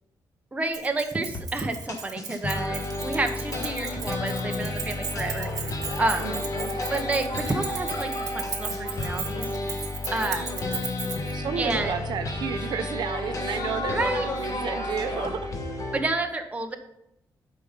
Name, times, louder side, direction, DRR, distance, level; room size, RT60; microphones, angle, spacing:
voice 1, 0.5-6.3 6.9-9.8 10.1-10.5 11.6-11.9 13.9-14.3 15.9-16.8, right 2 dB, 20° right, 5 dB, 1.0 m, -30 dB
Keys jangling, 0.7-11.4, right 6 dB, 55° right, 1.5 m, -36 dB
sound 1, 1.3-1.4 1.9-16.0, left 2 dB, 45° left, 1.3 m, -32 dB
sound 2, 2.4-2.5 2.8-12.0 12.5-12.8 13.1-15.3, left 2 dB, 85° left, 2.1 m, -39 dB
voice 2, 6.1-6.9 11.3-15.5, right 7 dB, 75° right, 8 dB, 0.7 m, -32 dB
8.5 x 5.7 x 5.2 m, 0.83 s
wide cardioid pair, 130°, 7 cm